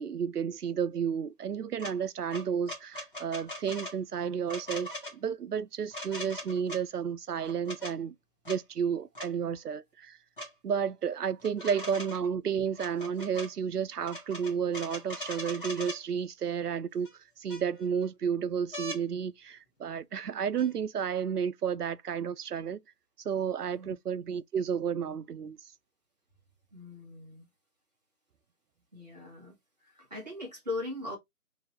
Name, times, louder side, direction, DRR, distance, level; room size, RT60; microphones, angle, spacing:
voice 1, 0.0-8.1 8.5-10.2 10.6-17.1 17.4-22.8 23.2-25.6, right 7 dB, 75° right, 0.6 m, -32 dB
sound 1, 1.8-1.9 2.3-4.0 4.5-5.1 5.9-6.8 7.5-7.9 8.4-8.6 9.1-9.3 10.4-10.5 11.4-12.3 12.7-13.5 14.0-16.0 17.0-17.1 17.5-18.0 18.7-19.0 20.6-20.7, left 1 dB, 35° left, 1.3 m, -40 dB
voice 2, 26.7-27.4 28.9-29.6 29.8-31.2, left 2 dB, 25° right, 1.3 m, -40 dB
3.0 x 2.7 x 3.6 m
figure-of-eight pair, 170°, 47 cm